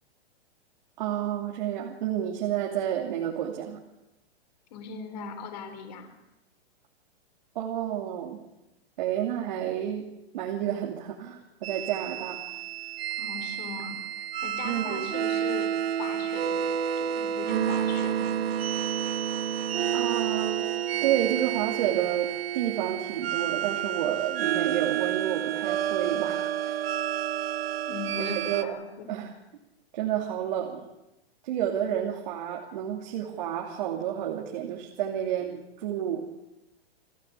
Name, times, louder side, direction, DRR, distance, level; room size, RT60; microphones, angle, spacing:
voice 1, 1.0-3.8 7.5-8.4 9.0-10.1 10.3-12.4 14.6-15.1 19.9-20.7 21.0-22.3 22.5-26.7 28.2-28.8 29.1-29.3 29.9-30.9 31.4-36.2, right 11 dB, 45° right, 0 dB, 2.9 m, -30 dB
voice 2, 4.7-6.2 13.2-18.4 27.9-29.1, left 6 dB, 40° left, 7 dB, 3.8 m, -40 dB
sound 1, 11.6-28.6, right 10 dB, 65° right, 1.2 m, -30 dB
28.5 x 14.5 x 8.3 m, 0.94 s
hypercardioid pair, 175°, 32 cm